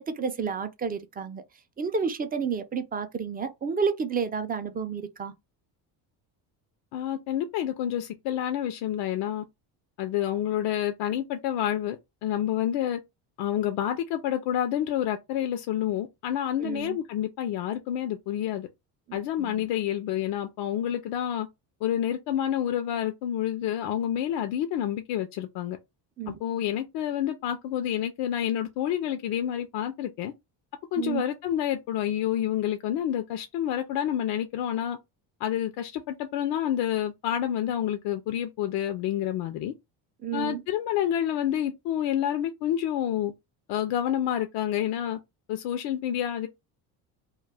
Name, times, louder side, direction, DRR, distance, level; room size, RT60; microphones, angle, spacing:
voice 1, 0.0-1.4 1.8-5.3 16.6-17.0 19.1-19.6 26.2-26.4 31.0-31.2 40.2-40.6, right 6 dB, 25° right, 0.3 m, -31 dB
voice 2, 6.9-9.4 10.0-13.0 13.4-18.7 19.1-21.5 21.8-25.8 26.3-30.3 30.9-35.0 35.4-39.7 40.3-43.3 43.7-45.2 45.5-46.5, left 11 dB, 70° left, 0.5 m, -28 dB
2.3 x 2.1 x 3.2 m
supercardioid pair, 95°, 43 cm